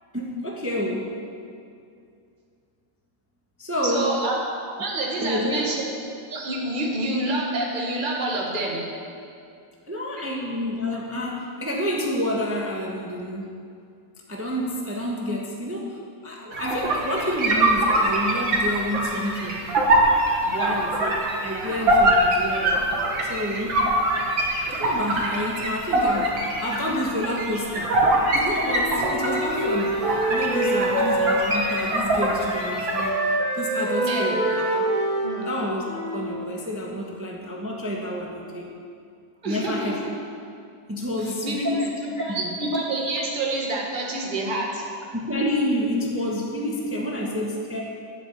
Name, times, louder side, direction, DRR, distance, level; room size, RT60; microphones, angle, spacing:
voice 1, 0.1-1.1 3.6-4.2 5.1-5.7 9.9-13.5 14.3-16.0 16.2-19.6 20.6-21.1 21.4-22.9 23.3-23.9 24.7-28.0 28.3-33.1 33.6-34.9 35.4-38.7 39.4-40.0 40.9-41.9 42.2-42.6 45.1-47.8, left 1 dB, 10° right, -2 dB, 1.0 m, -29 dB
voice 2, 3.8-4.3 4.8-5.9 6.3-8.9 10.2-10.3 20.4-20.8 30.7-31.0 34.0-34.2 35.2-35.5 39.4-39.9 41.2-44.8, right 2 dB, 25° right, -2 dB, 1.8 m, -28 dB
sound 1, 16.5-33.1, right 1 dB, 85° right, 2.5 m, -24 dB
Wind instrument woodwind instrument, 28.6-32.2 32.5-36.4, right 1 dB, 45° left, 2.8 m, -26 dB
10.5 x 8.2 x 8.5 m, 2.4 s
omnidirectional pair, 2.0 m